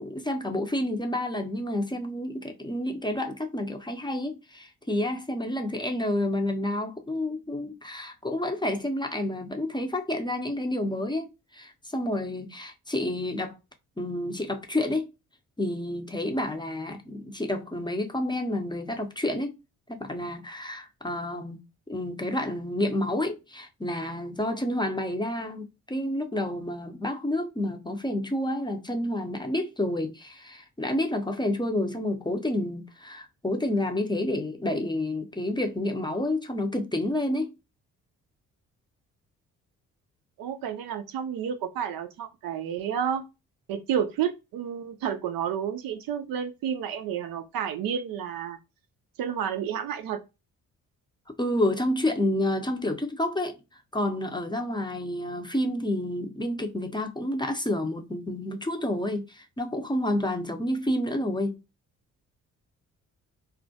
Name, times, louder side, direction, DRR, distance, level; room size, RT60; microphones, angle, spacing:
voice 1, 0.0-13.6 14.0-15.1 15.6-19.5 19.9-21.6 21.9-37.5 51.4-53.6 53.9-61.6, left 1 dB, 10° left, 0.6 m, -29 dB
voice 2, 40.4-43.2 43.7-48.6 49.2-50.2, right 8 dB, 60° right, 0.5 m, -30 dB
2.2 x 2.1 x 2.7 m
hypercardioid pair, 45°, 41 cm